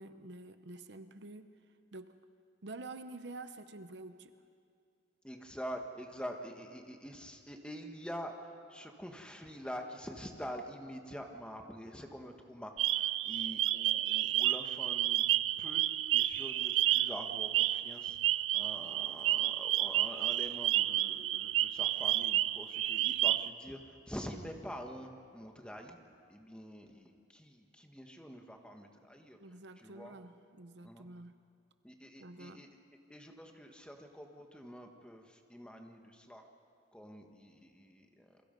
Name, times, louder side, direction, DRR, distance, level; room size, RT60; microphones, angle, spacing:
voice 1, 0.0-1.5 1.9-2.2 2.6-4.3 29.4-31.3 32.2-32.6, right 2 dB, 60° right, 10 dB, 0.8 m, -48 dB
voice 2, 5.2-15.2 15.6-15.8 16.1-26.0 26.3-30.1 30.8-31.1 31.8-32.7 33.1-36.5 36.9-38.4, equal, 5° left, 3 dB, 1.5 m, -46 dB
sound 1, 12.8-23.5, right 13 dB, 85° right, 0.5 m, -31 dB
28.5 x 23.0 x 5.3 m, 2.3 s
head